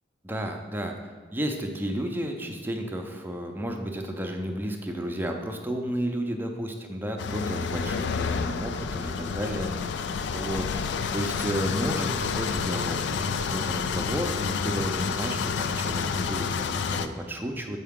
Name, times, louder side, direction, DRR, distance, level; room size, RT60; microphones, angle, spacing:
voice 1, 0.2-10.0 10.3-10.7 11.1-17.8, equal, 10° right, 3 dB, 0.5 m, -32 dB
Vintage Cadillac Rolls Up Squeak Break Idle, 7.2-17.1, left 5 dB, 65° left, 0.3 m, -29 dB
6.6 x 4.6 x 3.6 m, 1.5 s
head